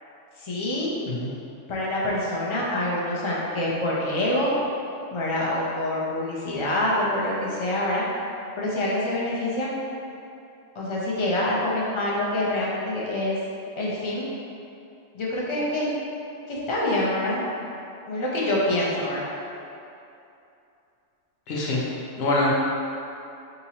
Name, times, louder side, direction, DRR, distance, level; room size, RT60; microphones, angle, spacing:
voice 1, 0.4-1.0 1.7-4.5 5.1-8.0 8.6-9.7 10.7-13.4 13.7-14.3 15.1-15.9 16.5-17.4 18.1-19.2, left 1 dB, 40° left, -6 dB, 0.4 m, -26 dB
voice 2, 21.5-21.8 22.1-22.5, left 2 dB, 60° left, -5 dB, 0.9 m, -24 dB
3.8 x 2.8 x 2.8 m, 2.7 s
omnidirectional pair, 1.3 m